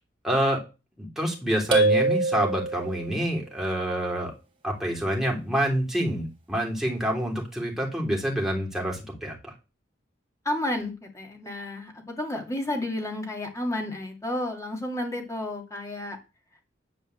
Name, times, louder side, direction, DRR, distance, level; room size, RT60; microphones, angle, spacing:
voice 1, 0.2-0.6 1.0-4.3 4.6-9.5, equal, ahead, -1 dB, 3.2 m, -27 dB
sound 1, 1.7-3.2, right 3 dB, 30° right, 3.4 m, -24 dB
voice 2, 10.4-16.2, left 1 dB, 15° left, 2 dB, 2.5 m, -31 dB
11.0 x 4.5 x 7.9 m, 0.30 s
head